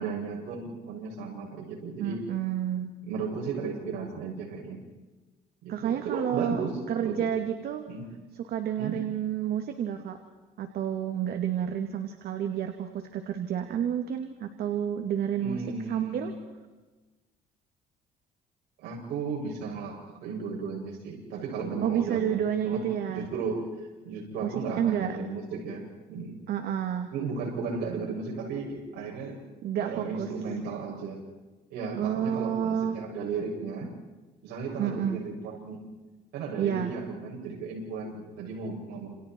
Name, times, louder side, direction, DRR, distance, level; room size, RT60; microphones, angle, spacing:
voice 1, 0.0-2.2 3.1-4.8 5.6-7.2 7.9-8.0 8.8-9.0 15.4-16.3 18.8-19.9 20.2-22.2 22.6-22.8 23.1-23.6 24.0-26.4 27.1-29.4 29.7-31.2 31.7-33.9 34.4-35.8 36.3-39.1, right 5 dB, 85° right, -2 dB, 7.5 m, -35 dB
voice 2, 2.0-3.0 5.7-6.6 6.9-7.9 8.4-10.2 10.6-15.6 15.9-16.3 21.8-23.3 24.4-25.2 26.5-27.1 29.6-30.3 32.0-33.0 34.8-35.2 36.6-36.9, right 9 dB, 65° right, 5 dB, 2.5 m, -30 dB
30.0 x 29.0 x 4.7 m, 1.2 s
cardioid pair, 110°, 17 cm